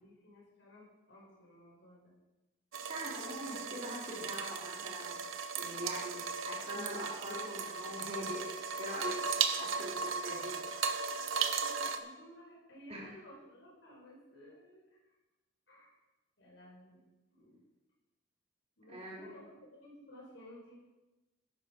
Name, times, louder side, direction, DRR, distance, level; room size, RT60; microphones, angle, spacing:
voice 1, 0.0-2.1 11.1-15.2 15.7-15.9 16.4-17.0 17.3-17.6 18.8-20.8, left 1 dB, 65° left, -3 dB, 4.9 m, -56 dB
sound 1, 2.7-12.0, right 5 dB, 90° right, 0.9 m, -36 dB
voice 2, 2.8-8.4 8.8-9.2 9.6-10.5 12.9-13.1 18.9-19.3, equal, 30° right, -4 dB, 3.6 m, -43 dB
12.5 x 11.0 x 5.3 m, 1.1 s
head